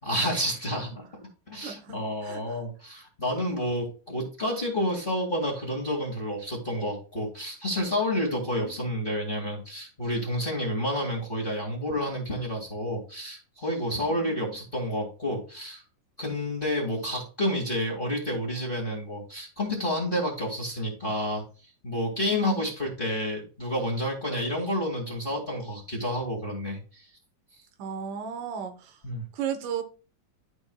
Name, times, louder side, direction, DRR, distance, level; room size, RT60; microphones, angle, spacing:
voice 1, 0.0-1.1 1.5-15.8 16.2-21.4 21.8-27.1 29.0-29.2, equal, 20° left, -2 dB, 1.8 m, -30 dB
voice 2, 1.6-2.6 3.6-3.8 8.3-8.8 14.1-14.5 22.3-22.7 27.8-29.0 29.3-29.8, right 6 dB, 80° right, 7 dB, 2.5 m, -36 dB
12.5 x 4.4 x 2.3 m, 0.36 s
omnidirectional pair, 3.7 m